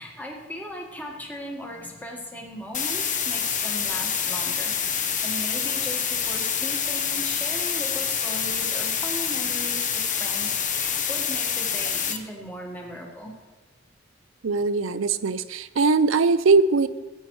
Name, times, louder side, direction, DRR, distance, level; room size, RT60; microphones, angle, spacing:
voice 1, 0.0-13.3, equal, 10° left, -1 dB, 1.6 m, -37 dB
sound 1, 2.7-12.2, left 7 dB, 40° left, 0.8 m, -27 dB
voice 2, 14.4-16.9, right 4 dB, 75° right, 14 dB, 0.5 m, -21 dB
18.0 x 9.1 x 3.2 m, 1.3 s
head